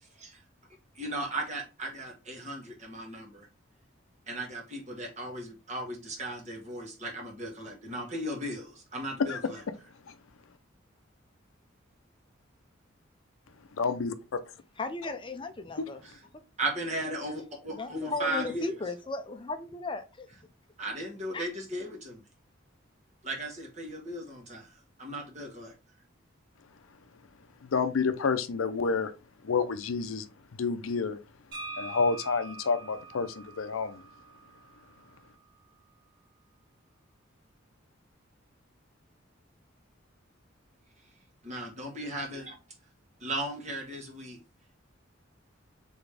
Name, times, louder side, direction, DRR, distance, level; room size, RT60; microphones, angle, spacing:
voice 1, 0.9-3.5 4.3-9.6 16.0-16.2 16.6-18.7 20.8-22.2 23.2-24.7 25.0-25.7 41.4-42.5 43.2-44.4, right 1 dB, 35° right, 1.4 m, -36 dB
voice 2, 13.8-14.4 15.8-15.9 27.6-29.1 29.4-30.3 30.6-31.2 31.8-34.0, left 5 dB, 90° left, 0.5 m, -29 dB
voice 3, 14.8-16.0 17.7-20.3 21.3-21.5, left 3 dB, 25° left, 0.5 m, -35 dB
sound 1, 31.5-35.3, right 3 dB, 55° right, 1.8 m, -44 dB
4.1 x 3.5 x 3.3 m
head